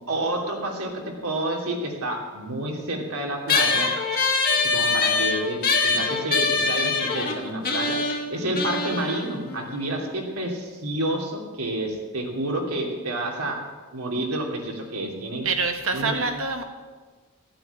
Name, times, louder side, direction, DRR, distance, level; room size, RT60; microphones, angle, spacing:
voice 1, 0.1-0.9 1.2-3.9 4.6-8.0 8.3-13.6 13.9-15.5 15.9-16.1, right 1 dB, 85° right, 0 dB, 2.9 m, -29 dB
sound 1, 3.5-10.3, left 4 dB, 45° left, 1.6 m, -24 dB
voice 2, 15.4-16.6, right 4 dB, 65° right, 5 dB, 1.7 m, -25 dB
14.5 x 8.8 x 8.2 m, 1.4 s
head